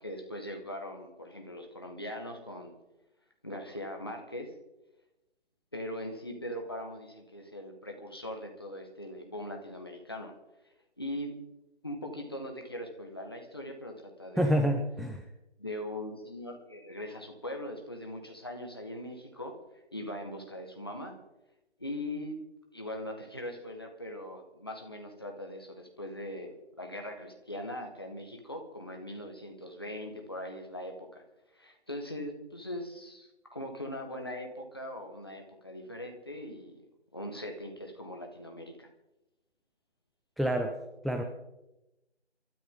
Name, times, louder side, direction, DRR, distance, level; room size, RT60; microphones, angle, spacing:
voice 1, 0.0-2.7 3.4-4.5 5.7-10.3 11.0-11.3 11.8-14.6 15.6-19.5 19.9-21.1 21.8-22.4 22.7-31.2 31.5-36.8 37.1-38.9, left 1 dB, 20° left, 3 dB, 1.6 m, -40 dB
voice 2, 14.4-15.2 40.4-40.7 41.0-41.2, equal, ahead, 4 dB, 0.5 m, -27 dB
27.5 x 13.0 x 3.8 m, 0.96 s
figure-of-eight pair, 175°, 34 cm